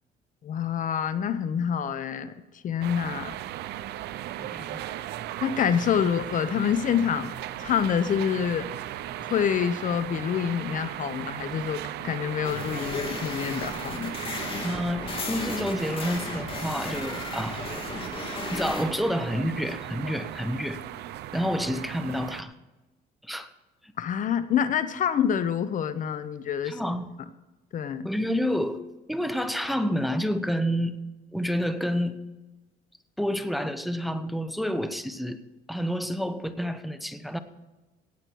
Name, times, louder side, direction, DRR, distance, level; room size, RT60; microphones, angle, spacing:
voice 1, 0.4-2.3 2.6-3.3 5.4-7.3 7.6-8.7 9.2-14.1 24.0-26.8 27.7-28.1, left 8 dB, 50° left, 13 dB, 0.8 m, -27 dB
sound 1, 2.8-22.4, right 13 dB, 75° right, 0.7 m, -37 dB
voice 2, 4.4-4.8 14.6-17.6 18.5-20.8 21.3-22.5 23.2-23.5 23.8-23.9 26.6-27.1 28.0-28.8 29.1-30.9 31.3-32.2 33.2-35.4 35.7-37.4, equal, ahead, 10 dB, 0.9 m, -29 dB
sound 2, 12.4-18.8, left 3 dB, 30° left, 3.0 m, -35 dB
17.0 x 8.6 x 4.6 m, 1.1 s
cardioid pair, 110°, 17 cm